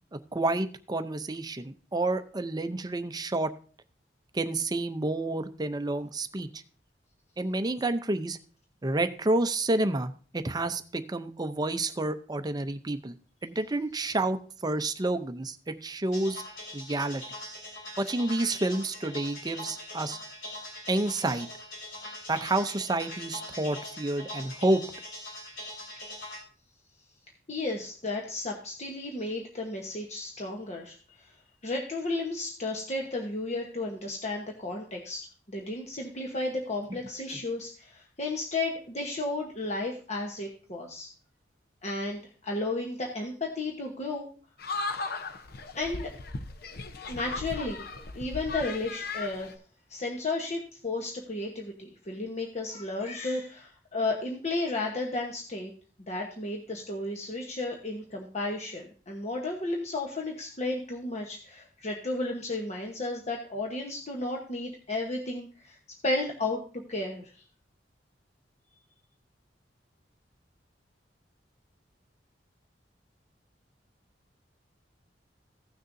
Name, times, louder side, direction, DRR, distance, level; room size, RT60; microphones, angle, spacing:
voice 1, 0.3-3.5 4.3-6.6 7.4-8.4 8.8-13.1 13.4-16.4 16.7-17.2 18.0-20.2 20.9-21.5 22.3-24.8, right 2 dB, 20° right, 9 dB, 0.6 m, -29 dB
sound 1, 16.1-26.4, left 1 dB, 90° left, 3.5 m, -42 dB
voice 2, 27.5-31.3 31.6-41.1 41.8-44.3 45.7-46.1 47.1-47.9 48.1-49.5 49.9-55.7 56.1-65.8 66.0-66.6 66.9-67.4, left 2 dB, 40° left, 0 dB, 1.1 m, -33 dB
sound 2, 44.6-49.5, left 3 dB, 60° left, 0.8 m, -37 dB
16.0 x 6.5 x 2.6 m, 0.40 s
head